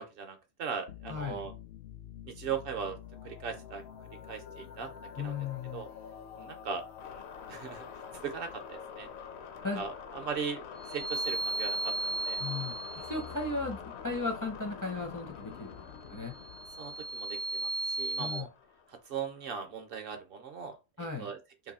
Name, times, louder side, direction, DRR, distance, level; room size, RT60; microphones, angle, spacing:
voice 1, 0.0-1.5 2.3-3.0 3.2-3.8 4.3-4.9 5.2-5.4 5.7-5.9 6.4-7.2 7.5-7.8 8.1-9.1 9.7-10.6 10.9-12.4 12.9-13.1 16.8-18.5 18.9-21.4, right 6 dB, 55° right, 0.6 m, -39 dB
sound 1, 0.9-19.3, left 7 dB, 65° left, 0.7 m, -46 dB
voice 2, 1.1-1.4 5.2-5.8 9.6-9.8 12.4-12.8 13.0-16.3 18.2-18.5 21.0-21.3, left 3 dB, 25° left, 0.4 m, -36 dB
sound 2, 10.8-13.3 16.3-18.4, right 3 dB, 85° left, 1.2 m, -35 dB
3.0 x 2.6 x 4.0 m
omnidirectional pair, 1.5 m